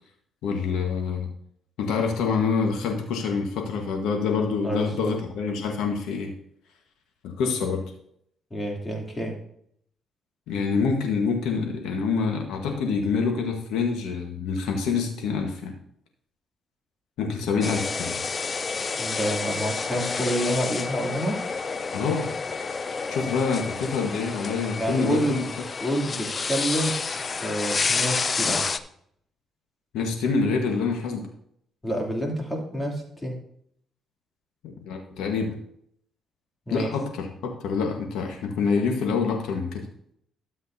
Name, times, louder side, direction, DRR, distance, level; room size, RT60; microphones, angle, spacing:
voice 1, 0.4-1.3 1.8-6.3 7.2-7.8 10.5-15.7 17.2-18.2 21.9-22.3 23.1-25.5 29.9-31.3 34.6-35.6 36.7-39.9, left 5 dB, 90° left, 2 dB, 1.3 m, -26 dB
voice 2, 4.6-5.1 8.5-9.4 19.0-21.4 24.8-25.4 25.8-28.8 31.8-33.4 36.7-36.9, equal, 20° left, -1 dB, 2.8 m, -28 dB
sound 1, 17.6-28.8, left 4 dB, 35° left, 0.5 m, -29 dB
13.0 x 7.7 x 2.7 m, 0.69 s
cardioid pair, 90°, 0 cm